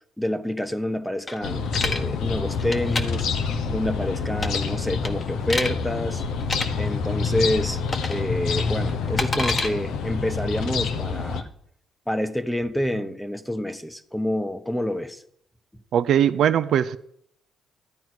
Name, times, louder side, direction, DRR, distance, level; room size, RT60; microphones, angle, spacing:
voice 1, 0.2-3.3 3.7-6.2 6.8-7.8 8.1-11.5 12.1-15.2, left 1 dB, 5° left, 1.1 m, -28 dB
sound 1, 1.3-2.0 2.6-3.0 4.4-4.7 5.0-5.7 6.4-6.7 7.9-8.2 8.5-9.7, left 2 dB, 30° left, 1.4 m, -28 dB
sound 2, 1.4-11.4, left 5 dB, 85° left, 1.3 m, -27 dB
voice 2, 15.9-17.0, right 9 dB, 70° right, 0.6 m, -20 dB
13.0 x 9.1 x 6.2 m
cardioid pair, 90°, 0 cm